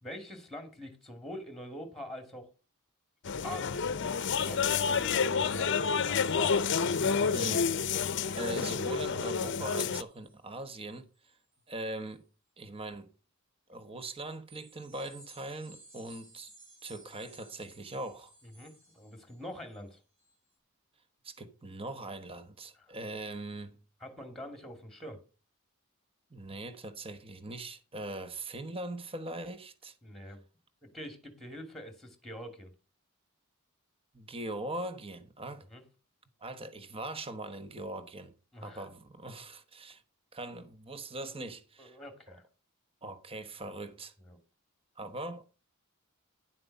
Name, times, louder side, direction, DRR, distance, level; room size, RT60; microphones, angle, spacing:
voice 1, 0.0-2.5 3.2-3.9 4.3-6.6 18.4-20.0 22.8-22.9 24.0-25.2 30.0-30.4 30.9-32.7 35.7-35.8 38.5-38.9 41.8-42.4 43.7-43.8 44.2-44.4, equal, ahead, 2.2 m, -45 dB
sound 1, 3.3-10.0, left 6 dB, 55° left, 0.6 m, -29 dB
sound 2, 5.5-10.9 11.2-11.6 12.1-12.2 14.5-19.8 20.2-20.3, right 2 dB, 65° right, 5.0 m, -56 dB
voice 2, 7.3-7.7 8.3-11.4 11.7-12.2 12.6-13.1 13.7-16.5 16.8-18.3 21.2-23.8 26.3-30.0 34.1-35.7 36.4-38.3 38.6-40.0 40.3-42.0 43.0-44.1 45.0-45.4, right 2 dB, 25° right, 1.1 m, -41 dB
10.5 x 7.6 x 5.4 m
head